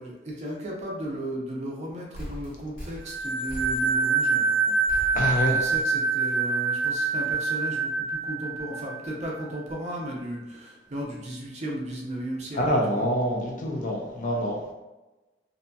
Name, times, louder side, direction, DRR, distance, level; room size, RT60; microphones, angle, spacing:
voice 1, 0.0-5.2 5.5-12.6 12.9-13.1, right 1 dB, 40° right, -2 dB, 0.5 m, -35 dB
sound 1, 2.1-4.2 4.9-5.8 6.2-6.3 6.8-7.1, equal, 60° left, 1.4 m, -40 dB
sound 2, 3.0-9.5, right 4 dB, 75° left, 1.0 m, -26 dB
voice 2, 5.1-5.6 12.5-14.6, equal, 45° left, -1 dB, 0.5 m, -26 dB
2.6 x 2.6 x 2.2 m, 1.1 s
head